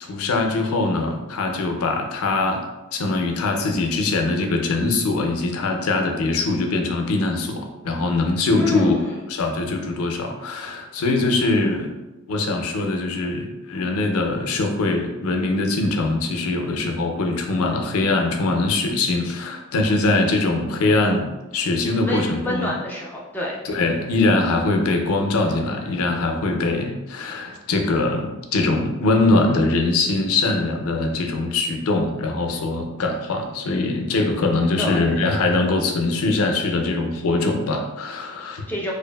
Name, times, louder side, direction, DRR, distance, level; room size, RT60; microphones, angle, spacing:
voice 1, 0.0-2.6 2.9-8.9 9.3-11.9 12.3-22.7 23.6-38.6, left 2 dB, 80° left, 4 dB, 0.4 m, -22 dB
voice 2, 8.6-9.2 22.0-23.6 34.8-35.2 38.7-38.9, left 1 dB, 10° left, -3 dB, 0.3 m, -27 dB
2.6 x 2.4 x 2.2 m, 1.1 s
head